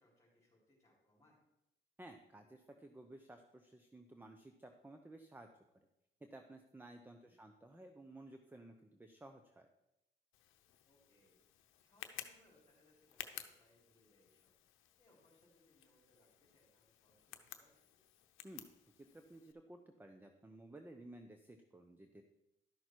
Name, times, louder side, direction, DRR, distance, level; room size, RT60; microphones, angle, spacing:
voice 1, 0.0-1.4 7.0-7.3 10.9-18.0, left 1 dB, 15° left, -7 dB, 3.8 m, -72 dB
voice 2, 2.0-5.5 5.7-5.9 6.2-9.7 18.4-18.7 18.9-22.2, right 1 dB, 10° right, 6 dB, 0.7 m, -55 dB
Tick, 10.3-19.5, left 12 dB, 90° left, 0.8 m, -55 dB
12.0 x 6.3 x 4.6 m, 0.89 s
cardioid pair, 90°, 20 cm